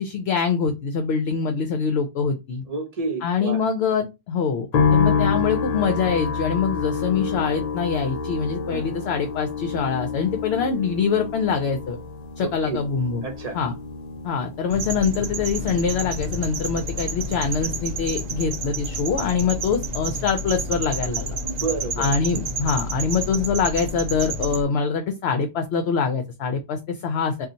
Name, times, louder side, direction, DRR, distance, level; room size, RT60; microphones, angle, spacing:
voice 1, 0.0-2.6 3.2-12.0 12.4-13.2 13.5-13.7 14.2-21.4 22.0-27.5, left 6 dB, 65° left, 6 dB, 0.8 m, -24 dB
voice 2, 2.7-3.6 8.7-8.8 10.5-10.7 12.4-12.8 13.2-13.6 21.4-22.1, right 3 dB, 35° right, 2 dB, 0.8 m, -30 dB
sound 1, 4.7-20.0 20.2-21.1, left 5 dB, 85° left, 0.3 m, -29 dB
sound 2, 14.7-24.6, right 1 dB, 80° right, 0.3 m, -30 dB
2.7 x 2.4 x 3.8 m, 0.24 s
omnidirectional pair, 1.3 m